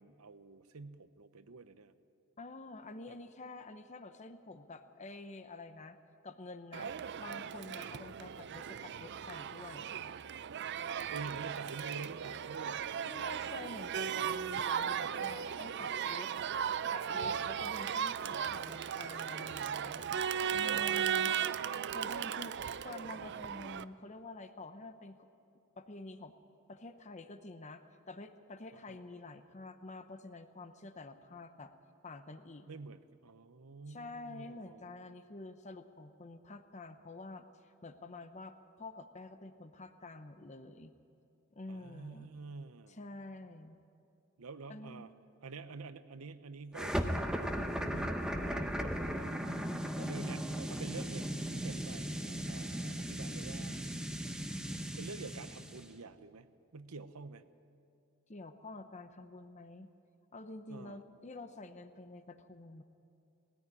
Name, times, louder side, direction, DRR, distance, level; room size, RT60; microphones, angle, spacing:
voice 1, 0.0-1.9 3.1-3.2 11.1-12.8 20.7-21.9 28.9-29.0 32.7-34.9 41.7-43.0 44.4-45.1 45.4-47.0 47.4-49.5 50.0-54.1 55.0-56.5 56.7-57.4 60.7-61.0, right 4 dB, 80° right, 12 dB, 0.8 m, -48 dB
voice 2, 2.4-6.0 6.2-6.9 7.2-9.9 13.0-16.3 16.9-20.1 20.5-21.4 21.9-25.3 25.8-26.4 26.7-31.7 32.0-32.7 33.9-40.9 41.5-42.3 42.9-43.8 44.7-45.1 58.3-59.9 60.3-62.8, left 2 dB, 35° left, 9 dB, 0.9 m, -48 dB
Crowd, 6.7-23.8, right 8 dB, 55° right, 0.4 m, -36 dB
sound 1, 46.7-55.9, equal, 5° right, 1.0 m, -37 dB
19.5 x 14.0 x 9.8 m, 2.6 s
head